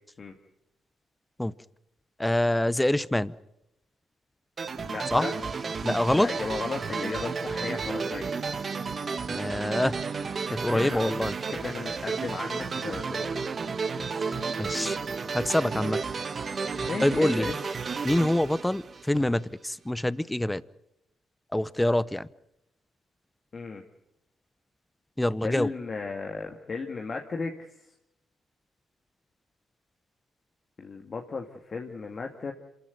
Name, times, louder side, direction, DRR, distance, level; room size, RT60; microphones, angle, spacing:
voice 1, 2.2-3.3 5.1-5.3 5.8-6.3 9.3-10.0 10.5-11.3 14.6-15.0 15.3-16.0 17.0-17.5 18.0-20.6 21.5-22.3 25.2-25.7, left 1 dB, 10° left, 19 dB, 0.7 m, -25 dB
sound 1, 4.6-19.4, right 5 dB, 40° right, 1.3 m, -32 dB
voice 2, 4.8-5.3 6.1-8.3 10.7-11.1 11.5-13.5 16.8-17.5 23.5-23.8 25.4-27.5 30.8-32.5, left 4 dB, 40° left, 2 dB, 1.9 m, -35 dB
26.5 x 14.0 x 9.5 m, 0.84 s
cardioid pair, 75°, 0 cm